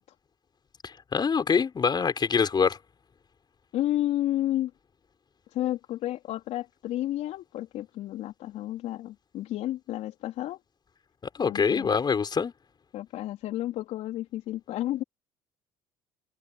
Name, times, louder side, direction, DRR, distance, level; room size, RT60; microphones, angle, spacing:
voice 1, 0.8-2.8 11.4-12.5, left 6 dB, 35° left, 5.0 m, -25 dB
voice 2, 3.7-4.7 5.5-10.6 11.4-11.9 12.9-15.0, left 14 dB, 65° left, 4.0 m, -31 dB
hypercardioid pair, 65°, 12 cm